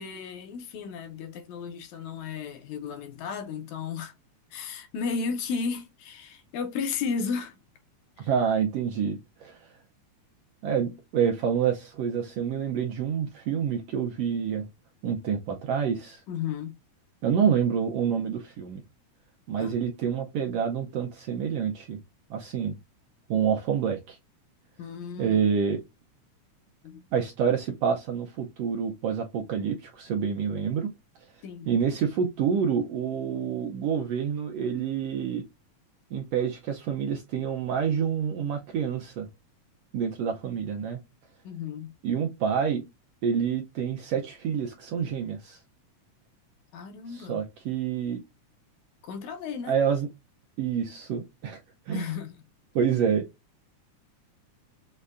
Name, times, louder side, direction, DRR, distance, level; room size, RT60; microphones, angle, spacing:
voice 1, 0.0-4.1 4.5-7.6 8.2-8.3 16.3-16.8 19.6-19.8 24.8-25.4 26.8-27.0 31.4-31.7 41.4-41.9 46.7-47.4 49.0-49.8 51.9-52.4, left 5 dB, 80° left, 2.1 m, -34 dB
voice 2, 8.2-9.8 10.6-14.7 15.0-16.2 17.2-18.8 19.5-22.0 22.3-22.8 23.3-24.2 25.2-25.8 27.1-30.9 31.3-35.4 36.1-39.3 39.9-41.0 42.0-42.8 43.2-45.6 47.1-48.2 49.6-50.1 50.6-51.6 51.9-52.1 52.7-53.3, right 7 dB, 85° right, 1.4 m, -27 dB
6.4 x 2.2 x 2.4 m
omnidirectional pair, 3.5 m